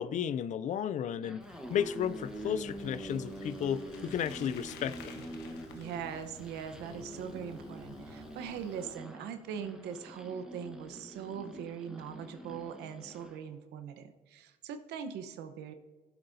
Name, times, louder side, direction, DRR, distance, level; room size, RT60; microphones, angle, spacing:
voice 1, 0.0-1.4 1.7-5.2, left 9 dB, 45° left, 0.4 m, -33 dB
sound 1, 1.1-13.4, right 1 dB, 5° right, 1.1 m, -45 dB
Bicycle, 1.4-8.9, left 6 dB, 80° left, 1.1 m, -54 dB
sound 2, 2.0-8.6, equal, 20° right, 3.4 m, -56 dB
voice 2, 5.7-15.7, right 7 dB, 80° right, 0.9 m, -41 dB
19.0 x 7.8 x 2.7 m
cardioid pair, 110°, 17 cm